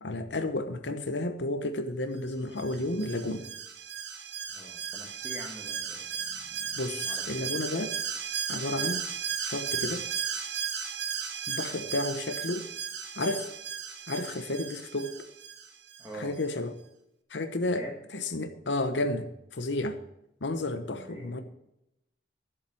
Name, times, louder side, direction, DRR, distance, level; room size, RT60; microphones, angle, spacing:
voice 1, 0.0-3.5 6.8-8.0 8.5-9.1 9.4-10.1 11.5-12.7 13.2-13.5 14.1-15.2 16.1-16.7 17.3-17.8 18.1-20.0 20.4-21.4, left 2 dB, 75° left, 8 dB, 1.0 m, -32 dB
Alarm, 2.6-16.1 16.4-16.5, right 7 dB, 65° right, 1.3 m, -35 dB
voice 2, 4.5-7.4 11.7-11.9 16.0-16.4 17.7-18.0 20.9-21.4, right 1 dB, 15° right, -2 dB, 1.7 m, -45 dB
11.5 x 7.3 x 7.1 m, 0.85 s
head